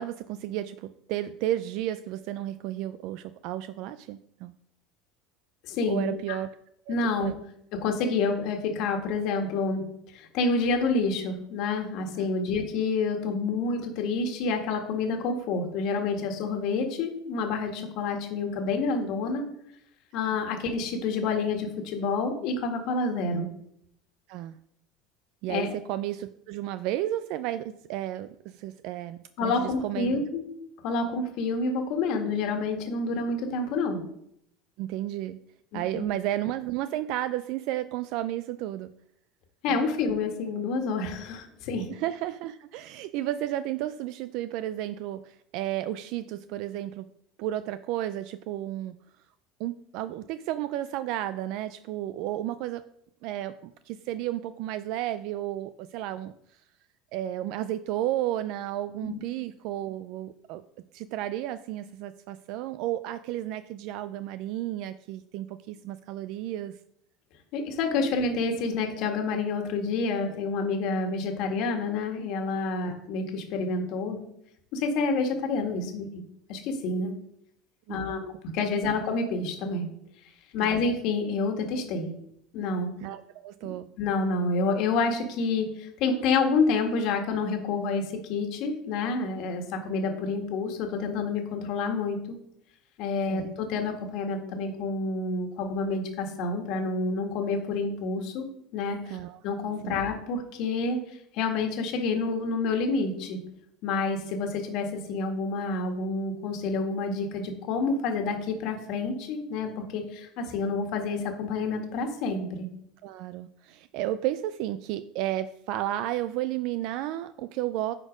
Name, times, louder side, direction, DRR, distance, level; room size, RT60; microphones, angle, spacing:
voice 1, 0.0-4.5 5.9-6.5 6.9-7.0 7.2-7.4 12.2-12.3 24.3-24.6 25.4-30.2 34.8-35.4 35.7-38.9 39.7-39.8 41.9-47.1 47.4-48.9 49.6-52.8 53.2-56.6 57.1-60.6 60.9-66.7 72.8-72.9 77.9-78.2 80.6-80.8 83.0-83.9 93.3-93.5 99.1-99.4 99.8-100.0 113.0-117.9, right 13 dB, 65° right, 13 dB, 0.3 m, -32 dB
voice 2, 5.6-6.4 6.9-7.3 7.8-9.8 10.1-19.4 20.1-23.5 25.5-25.7 29.4-30.4 30.8-34.0 35.7-36.1 39.6-41.9 59.0-59.2 67.5-74.3 74.7-76.2 76.5-77.1 77.9-79.9 80.5-82.1 82.5-83.0 83.6-88.0 88.3-92.4 93.0-98.4 98.7-99.2 99.4-101.0 101.3-103.4 103.8-112.7, left 4 dB, 60° left, 4 dB, 1.7 m, -28 dB
9.7 x 4.3 x 5.1 m, 0.74 s
supercardioid pair, 125°, 0 cm